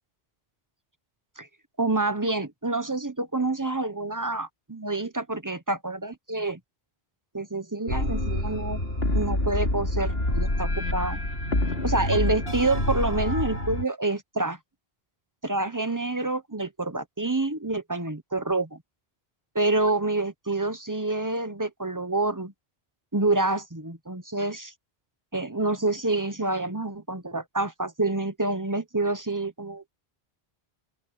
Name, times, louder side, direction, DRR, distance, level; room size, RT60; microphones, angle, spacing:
voice 1, 1.8-6.6 7.3-11.2 11.8-14.6 15.4-18.8 19.5-22.5 23.1-24.7 25.3-29.9, right 2 dB, 20° right, 1.0 m, -27 dB
sound 1, 7.9-13.8, left 1 dB, 70° left, 4.5 m, -27 dB
open air
omnidirectional pair, 1.0 m